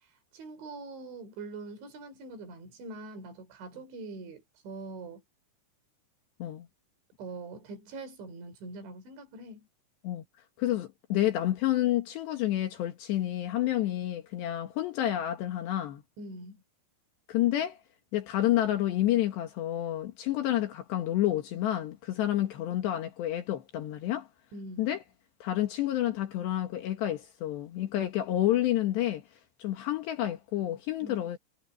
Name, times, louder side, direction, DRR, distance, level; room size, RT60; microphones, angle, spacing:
voice 1, 0.3-5.2 7.2-9.7 16.2-16.6 24.5-24.9 31.0-31.3, right 3 dB, 70° right, 6.7 m, -43 dB
voice 2, 10.6-16.0 17.3-17.8 18.1-24.3 24.8-25.0 25.4-29.2 29.6-31.4, left 13 dB, 70° left, 3.5 m, -29 dB
omnidirectional pair, 5.5 m